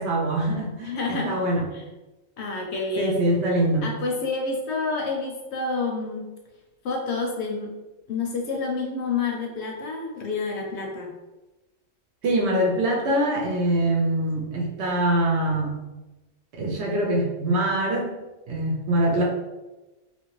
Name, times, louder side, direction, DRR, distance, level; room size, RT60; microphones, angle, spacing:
voice 1, 0.0-1.7 3.0-3.9 12.2-15.8 16.5-18.2 18.5-19.2, right 1 dB, 65° right, -2 dB, 0.8 m, -24 dB
voice 2, 0.8-1.3 1.7-1.8 2.4-3.1 3.8-6.3 6.8-7.7 8.1-11.1, left 3 dB, 65° left, 0 dB, 0.8 m, -28 dB
2.8 x 2.5 x 3.0 m, 1.1 s
omnidirectional pair, 1.4 m